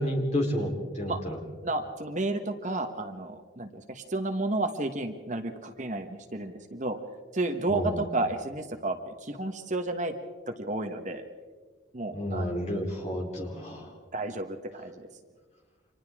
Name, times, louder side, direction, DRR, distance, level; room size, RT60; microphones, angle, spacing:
voice 1, 0.0-1.4 7.7-8.0 12.1-13.9, equal, 35° left, -1 dB, 3.9 m, -30 dB
voice 2, 1.6-7.0 7.3-10.1 10.5-11.2 11.9-12.5 14.1-15.1, right 2 dB, 40° right, 6 dB, 1.3 m, -32 dB
30.0 x 26.0 x 3.7 m, 1.4 s
head